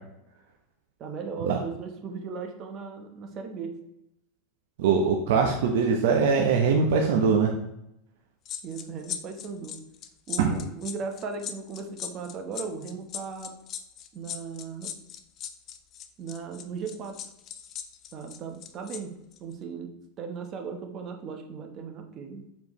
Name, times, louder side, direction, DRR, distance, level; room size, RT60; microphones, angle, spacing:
voice 1, 1.0-3.7 8.6-9.7 10.3-13.5 14.1-14.9 16.2-17.2 18.1-19.1 19.4-19.9 20.2-22.4, right 5 dB, 35° right, 5 dB, 1.0 m, -37 dB
voice 2, 4.8-7.5 10.4-10.5, right 5 dB, 75° right, 1 dB, 0.8 m, -22 dB
sound 1, 8.5-19.0 19.3-19.5, left 9 dB, 35° left, 0.6 m, -38 dB
7.3 x 4.6 x 3.1 m, 0.84 s
supercardioid pair, 145°, 0 cm